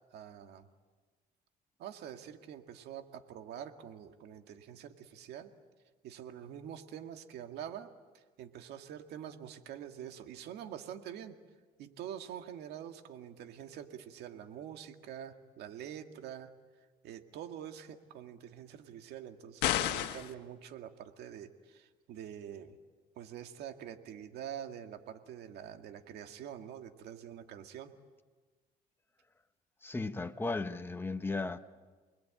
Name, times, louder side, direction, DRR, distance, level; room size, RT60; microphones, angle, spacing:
voice 1, 0.1-0.7 1.8-5.5 6.0-11.4 11.8-16.5 17.0-22.8 23.2-27.9, right 9 dB, 80° right, 2.0 m, -46 dB
sound 1, 19.6-20.3, left 13 dB, 90° left, 1.5 m, -30 dB
voice 2, 29.8-31.6, left 3 dB, 15° left, 1.4 m, -35 dB
29.5 x 21.5 x 8.9 m
cardioid pair, 110°, 17 cm